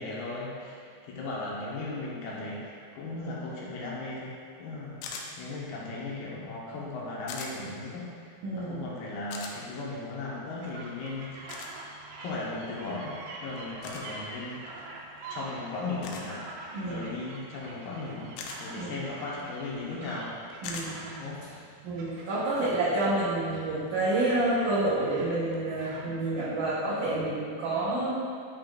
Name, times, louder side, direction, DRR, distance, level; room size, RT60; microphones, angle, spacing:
voice 1, 0.0-11.5 12.2-14.8 15.3-16.4 16.8-20.3 21.2-21.4, left 2 dB, 70° left, -5 dB, 2.9 m, -37 dB
sound 1, 5.0-5.3 7.3-7.5 9.3-9.5 11.5-11.7 13.8-14.1 16.0-16.3 18.4-18.6 20.6-20.9, left 5 dB, 90° left, 2.9 m, -39 dB
voice 2, 8.4-8.9 16.7-17.1 18.7-19.0 20.6-21.1 21.8-28.1, right 2 dB, 65° right, -10 dB, 2.2 m, -29 dB
sound 2, 10.6-26.1, right 2 dB, 85° right, 2.9 m, -45 dB
10.5 x 5.6 x 2.5 m, 2.3 s
omnidirectional pair, 4.8 m